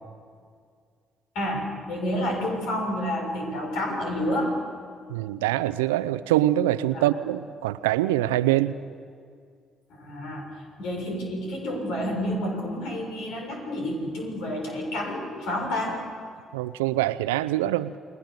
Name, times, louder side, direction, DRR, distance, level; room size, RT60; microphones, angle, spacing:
voice 1, 1.3-4.5 6.9-7.1 9.9-10.4 10.8-16.0, left 1 dB, 65° left, 2 dB, 6.6 m, -29 dB
voice 2, 5.1-8.8 16.5-18.0, right 14 dB, 80° right, 14 dB, 0.6 m, -24 dB
30.0 x 21.0 x 6.8 m, 2.2 s
hypercardioid pair, 45°, 0 cm